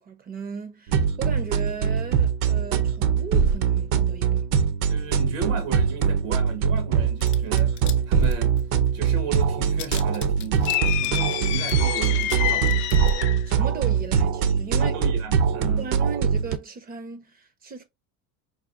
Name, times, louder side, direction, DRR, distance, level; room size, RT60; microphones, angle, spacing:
voice 1, 0.0-4.4 13.5-14.9 15.8-17.8, right 5 dB, 25° right, 0.4 m, -36 dB
sound 1, 0.9-16.6, right 7 dB, 65° right, 0.6 m, -23 dB
voice 2, 4.9-8.6 8.9-10.6 11.0-12.7 14.7-15.9, right 4 dB, 85° right, 1.3 m, -34 dB
sound 2, 7.2-8.9 9.1-9.2 9.4-12.4 12.6-13.1, left 10 dB, 30° left, 0.4 m, -39 dB
sound 3, 10.7-13.5, left 14 dB, 70° left, 0.6 m, -27 dB
4.7 x 2.2 x 2.5 m
supercardioid pair, 130°, 39 cm